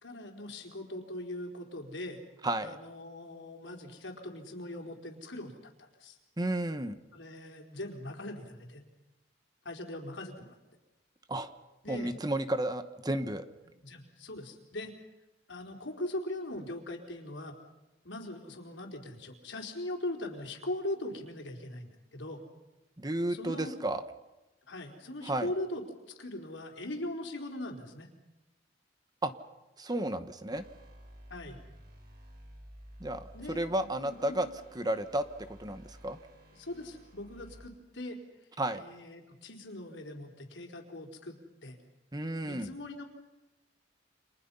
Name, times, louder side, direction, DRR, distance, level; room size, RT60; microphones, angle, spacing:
voice 1, 0.0-2.2 2.6-5.5 5.8-6.2 7.1-8.8 9.6-10.6 11.8-12.1 13.8-14.9 15.5-17.6 18.0-22.4 23.3-23.7 24.7-25.8 26.2-28.1 31.3-31.6 33.3-33.6 34.0-34.4 36.5-38.2 38.7-41.8 42.4-43.0, left 1 dB, 85° left, 2 dB, 4.3 m, -40 dB
voice 2, 2.4-2.8 6.4-7.0 11.3-11.5 11.9-13.5 23.0-24.0 25.2-25.5 29.2-29.3 29.8-30.6 33.0-34.5 34.7-35.2 35.6-36.2 38.6-38.8 42.1-42.7, right 1 dB, 20° right, 10 dB, 1.2 m, -32 dB
sound 1, 30.5-37.7, equal, 55° right, 6.1 m, -53 dB
29.5 x 26.5 x 5.6 m, 1.0 s
head